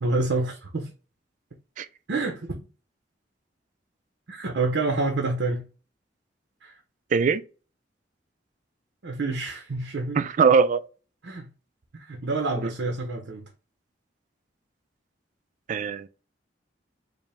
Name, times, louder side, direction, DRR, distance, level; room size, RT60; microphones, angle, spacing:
voice 1, 0.0-0.9 2.1-2.7 4.3-5.7 6.6-6.8 9.0-10.2 11.2-11.5 11.9-13.5, right 3 dB, 70° right, 0.7 m, -28 dB
voice 2, 10.2-10.8 12.6-12.7 15.7-16.1, right 5 dB, 45° right, 0.3 m, -21 dB
5.0 x 2.0 x 3.2 m
head